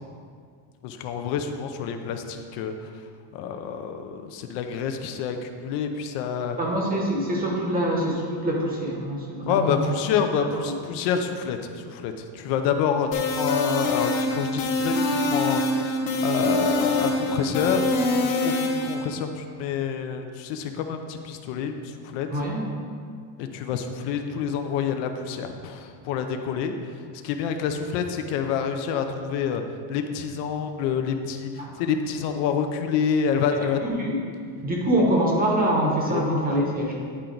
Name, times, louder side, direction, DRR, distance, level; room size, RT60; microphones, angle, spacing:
voice 1, 0.8-2.9 3.3-6.6 9.4-22.3 23.4-26.7 27.2-29.6 29.9-33.8 36.1-36.2, left 7 dB, 70° left, 6 dB, 0.7 m, -28 dB
voice 2, 6.6-9.9 10.5-10.7 22.3-22.6 31.6-31.7 33.5-34.2 34.6-37.0, right 1 dB, 20° right, -1 dB, 0.9 m, -25 dB
sound 1, 13.1-18.9, left 2 dB, 50° left, 1.0 m, -24 dB
10.0 x 4.4 x 3.9 m, 2.1 s
cardioid pair, 180°, 44 cm